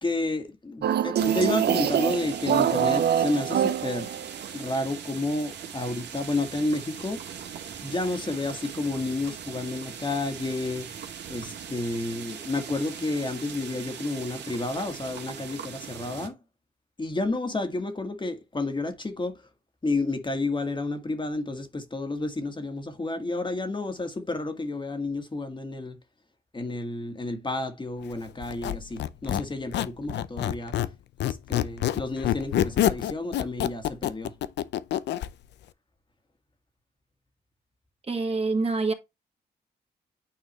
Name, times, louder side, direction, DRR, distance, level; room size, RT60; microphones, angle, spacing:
voice 1, 0.0-4.1 4.5-7.2 7.8-10.9 11.3-16.4 17.0-19.3 19.8-26.0 26.5-30.8 31.2-34.3, left 2 dB, 25° left, 1.6 m, -31 dB
sound 1, 0.8-4.3, right 9 dB, 70° right, 0.7 m, -24 dB
sound 2, 1.2-16.3, right 8 dB, 85° right, 1.9 m, -40 dB
Squeak, 28.4-30.9 31.2-35.3, left 12 dB, 85° left, 0.5 m, -27 dB
voice 2, 38.1-38.9, right 3 dB, 35° right, 1.7 m, -26 dB
9.0 x 4.5 x 3.1 m
cardioid pair, 75°, 17 cm